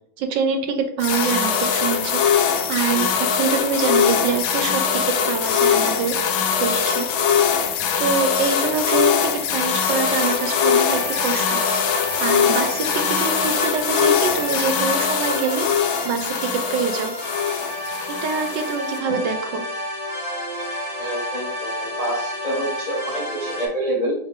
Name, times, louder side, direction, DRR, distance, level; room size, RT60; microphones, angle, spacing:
voice 1, 0.2-2.3 2.7-6.2 6.6-7.1 8.0-11.6 12.2-15.7 16.0-17.1 18.1-19.6, right 6 dB, 75° right, 6 dB, 1.1 m, -25 dB
sound 1, 1.0-19.0, left 7 dB, 80° left, 1.3 m, -22 dB
sound 2, 10.0-23.7, equal, 45° right, 1.8 m, -31 dB
voice 2, 21.0-24.1, right 1 dB, 30° left, -5 dB, 0.7 m, -27 dB
4.9 x 2.6 x 3.5 m, 0.71 s
omnidirectional pair, 2.1 m